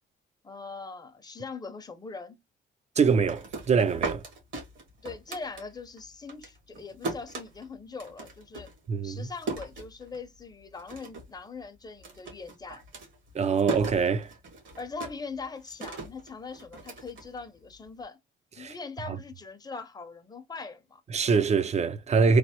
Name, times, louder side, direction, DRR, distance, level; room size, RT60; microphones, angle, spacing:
voice 1, 0.4-2.4 5.0-8.7 9.0-12.8 14.8-18.2 18.6-21.0, left 4 dB, 20° left, 0.6 m, -41 dB
voice 2, 3.0-4.2 8.9-9.3 13.3-14.3 18.6-18.7 19.1-19.2 21.1-22.4, right 5 dB, 35° right, 0.4 m, -24 dB
sound 1, 3.1-6.0 6.3-10.4 10.7-11.4 11.6-17.9, right 3 dB, 75° right, 1.4 m, -38 dB
3.2 x 2.0 x 2.8 m
cardioid pair, 90°, 20 cm